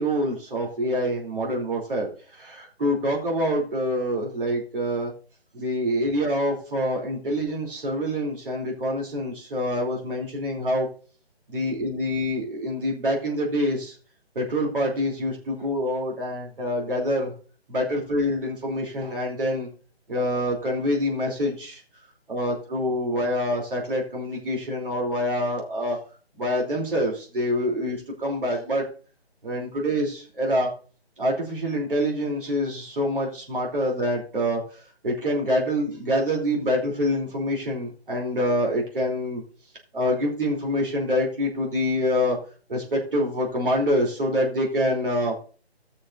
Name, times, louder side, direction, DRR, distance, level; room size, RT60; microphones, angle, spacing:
voice 1, 0.0-5.1 5.5-10.9 11.5-13.9 14.3-17.3 17.7-19.7 20.1-21.8 22.3-26.0 26.4-28.9 29.4-30.7 31.2-34.6 35.0-39.4 39.9-42.4 42.7-45.4, equal, 55° right, -1 dB, 3.0 m, -26 dB
18.0 x 6.4 x 2.5 m, 0.39 s
figure-of-eight pair, 155°, 32 cm